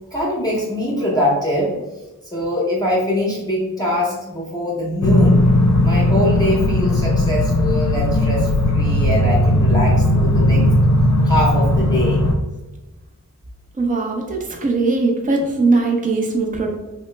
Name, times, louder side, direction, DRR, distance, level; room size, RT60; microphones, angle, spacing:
voice 1, 0.1-1.7 2.3-5.4 5.8-10.6 11.2-12.2, left 1 dB, 10° left, -5 dB, 0.7 m, -22 dB
sound 1, 5.0-12.3, left 1 dB, 50° left, 0.5 m, -16 dB
voice 2, 13.8-16.7, right 3 dB, 25° right, 0 dB, 0.6 m, -20 dB
2.9 x 2.1 x 3.1 m, 1.1 s
cardioid pair, 40°, 34 cm